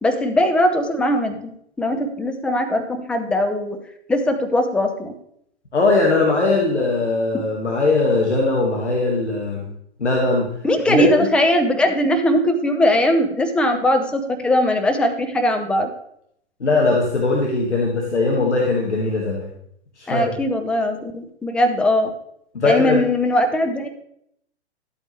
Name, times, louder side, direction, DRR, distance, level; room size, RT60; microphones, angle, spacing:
voice 1, 0.0-1.5 1.8-3.8 4.1-5.1 6.7-6.8 10.6-15.9 20.1-22.1 22.6-23.9, left 1 dB, 5° left, 5 dB, 0.6 m, -20 dB
voice 2, 5.7-9.7 10.0-10.5 10.9-11.3 16.6-19.5 20.0-20.2 22.5-23.0, left 3 dB, 80° left, -2 dB, 2.0 m, -20 dB
12.0 x 8.2 x 3.3 m, 0.71 s
figure-of-eight pair, 120°, 34 cm